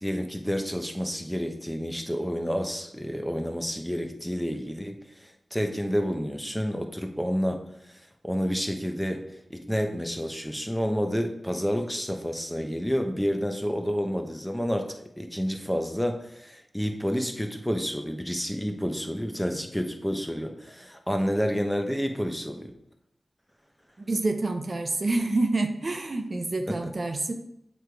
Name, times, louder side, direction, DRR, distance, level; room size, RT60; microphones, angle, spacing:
voice 1, 0.0-7.6 7.9-9.2 9.5-22.7 26.7-26.8, equal, 5° left, 5 dB, 0.9 m, -29 dB
voice 2, 24.0-27.3, right 2 dB, 50° right, 5 dB, 0.6 m, -27 dB
7.3 x 3.4 x 4.6 m, 0.78 s
cardioid pair, 50°, 0 cm